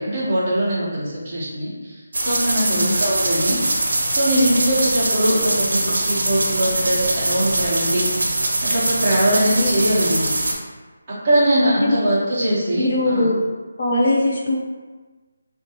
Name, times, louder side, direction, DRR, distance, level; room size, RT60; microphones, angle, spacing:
voice 1, 0.0-3.6 4.1-8.0 8.6-10.3 11.1-13.3, right 1 dB, 15° right, -9 dB, 0.9 m, -21 dB
sound 1, 2.1-10.5, right 2 dB, 55° right, 0.9 m, -22 dB
voice 2, 12.7-13.4 13.8-14.6, left 2 dB, 30° left, -3 dB, 0.4 m, -20 dB
3.5 x 2.6 x 4.4 m, 1.3 s
figure-of-eight pair, 180°, 0 cm